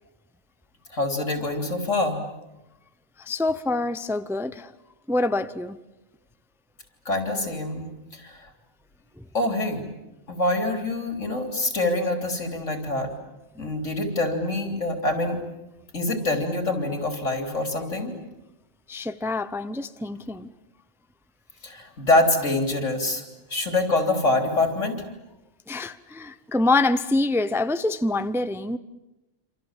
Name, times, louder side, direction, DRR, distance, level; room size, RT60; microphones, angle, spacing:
voice 1, 0.9-2.2 7.1-7.9 8.1-8.5 9.3-9.8 10.3-13.1 13.6-15.4 15.9-18.1 21.6-23.2 23.5-25.0, left 2 dB, 90° left, 3.9 m, -25 dB
voice 2, 3.2-4.7 5.1-5.8 18.9-20.5 25.7-28.8, left 2 dB, 5° right, 0.6 m, -25 dB
28.0 x 27.0 x 7.4 m
omnidirectional pair, 1.3 m